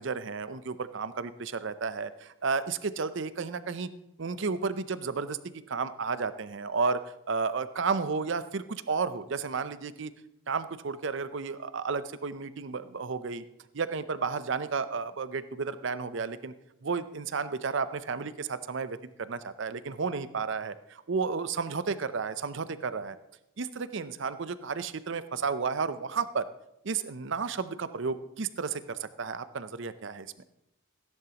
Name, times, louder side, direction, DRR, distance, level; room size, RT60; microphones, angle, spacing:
voice 1, 0.0-3.9 4.2-5.4 5.7-7.0 7.3-10.1 10.5-13.4 13.7-16.5 16.8-23.2 23.6-26.5 26.8-30.3, right 5 dB, 55° right, 13 dB, 0.6 m, -32 dB
16.5 x 10.5 x 2.9 m, 0.84 s
head